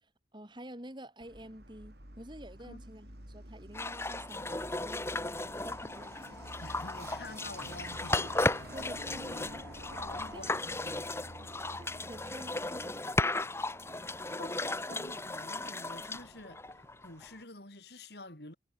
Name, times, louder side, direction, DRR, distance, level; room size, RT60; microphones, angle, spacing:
voice 1, 0.0-6.3 8.7-9.7 10.3-10.6 11.8-13.4, right 1 dB, 25° right, 3.6 m, -49 dB
Truck, 1.2-17.4, right 1 dB, 60° right, 6.2 m, -51 dB
sound 1, 3.7-17.3, left 2 dB, 15° left, 1.5 m, -35 dB
voice 2, 6.6-8.9 9.4-9.6 10.0-11.1 13.8-18.6, left 2 dB, 60° left, 4.3 m, -49 dB
head